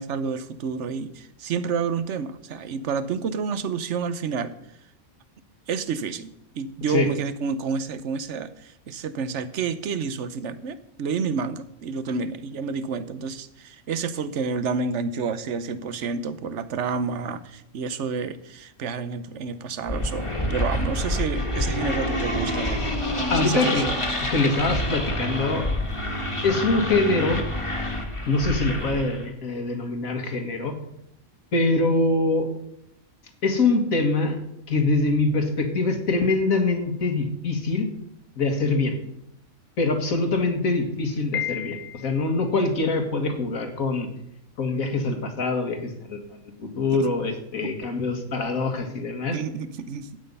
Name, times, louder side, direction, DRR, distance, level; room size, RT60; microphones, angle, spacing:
voice 1, 0.0-4.5 5.7-22.9 23.4-23.9 46.9-47.0 47.6-47.7 49.3-50.1, right 5 dB, 60° right, 14 dB, 1.1 m, -29 dB
sound 1, 19.9-29.3, left 1 dB, 20° left, 1.8 m, -27 dB
voice 2, 23.3-23.9 24.3-25.8 26.4-27.4 28.3-30.7 31.5-32.5 33.4-34.4 34.7-37.9 38.4-38.9 39.8-44.1 44.6-46.2 46.6-49.4, left 3 dB, 75° left, 6 dB, 2.3 m, -24 dB
Piano, 41.3-42.4, left 13 dB, 60° left, 0.8 m, -32 dB
12.5 x 9.0 x 5.4 m, 0.76 s
omnidirectional pair, 1.5 m